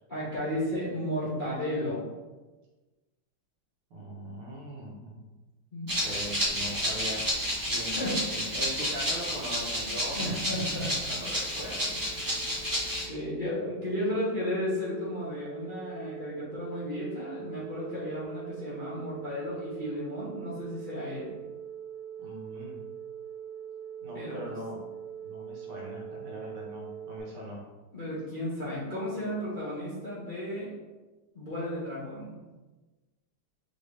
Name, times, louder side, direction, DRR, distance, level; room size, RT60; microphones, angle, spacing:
voice 1, 0.1-2.1 5.7-5.9 7.8-8.4 10.2-10.9 11.8-11.9 13.1-21.3 24.1-24.4 27.9-30.7 31.3-32.4, left 1 dB, 35° left, -9 dB, 0.8 m, -33 dB
voice 2, 3.9-5.2 6.0-7.2 7.7-10.3 10.8-12.4 22.2-22.8 24.0-24.9 25.2-27.6, equal, 85° right, -4 dB, 2.0 m, -41 dB
Rattle (instrument), 5.9-13.1, equal, 30° right, 0.3 m, -31 dB
sound 1, 10.3-27.2, right 9 dB, 85° left, 0.9 m, -43 dB
5.7 x 2.7 x 3.2 m, 1.2 s
omnidirectional pair, 2.3 m